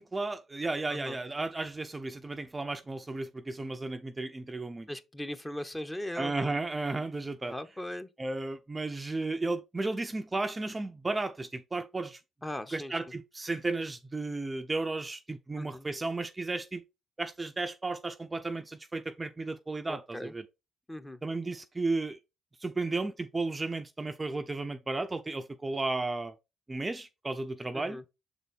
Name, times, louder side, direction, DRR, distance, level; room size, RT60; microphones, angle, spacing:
voice 1, 0.0-4.9 6.2-7.5 8.2-12.2 12.7-16.8 17.2-20.4 21.2-22.2 22.6-26.3 26.7-28.0, right 2 dB, 20° right, 0.5 m, -34 dB
voice 2, 0.9-1.2 4.9-6.3 7.5-8.1 12.4-13.0 15.6-15.9 19.9-20.3 20.9-21.2 27.7-28.0, left 1 dB, 15° left, 0.9 m, -39 dB
6.8 x 4.1 x 3.6 m
cardioid pair, 90°, 0 cm